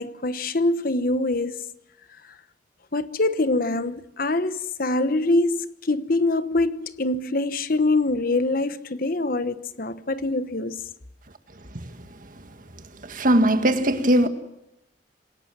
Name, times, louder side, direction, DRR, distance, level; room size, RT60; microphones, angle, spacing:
voice 1, 0.0-1.6 2.9-10.8, left 2 dB, 50° left, 1.1 m, -24 dB
voice 2, 13.1-14.3, right 1 dB, 45° right, 1.8 m, -19 dB
27.5 x 17.5 x 7.5 m
head